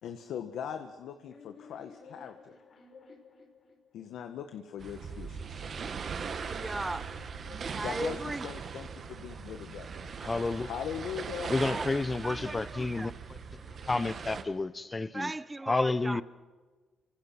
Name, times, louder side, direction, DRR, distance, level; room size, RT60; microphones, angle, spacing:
voice 1, 0.0-2.6 3.9-5.6 7.8-9.9 10.6-11.5, left 8 dB, 75° left, 1.5 m, -40 dB
sound 1, 0.9-4.3 5.3-8.7 9.3-11.7 12.8-15.2, left 4 dB, 55° left, 4.7 m, -56 dB
sound 2, 4.8-14.4, right 6 dB, 50° right, 1.8 m, -40 dB
sound 3, 5.0-12.5, right 6 dB, 85° right, 6.1 m, -48 dB
voice 2, 6.4-7.1 7.7-8.5 11.6-11.9 12.2-13.1 15.1-16.2, right 2 dB, 15° right, 1.1 m, -37 dB
voice 3, 10.2-10.7 11.5-13.2 13.8-15.3 15.7-16.2, left 3 dB, 25° left, 1.0 m, -30 dB
29.0 x 26.0 x 6.1 m
cardioid pair, 90°, 0 cm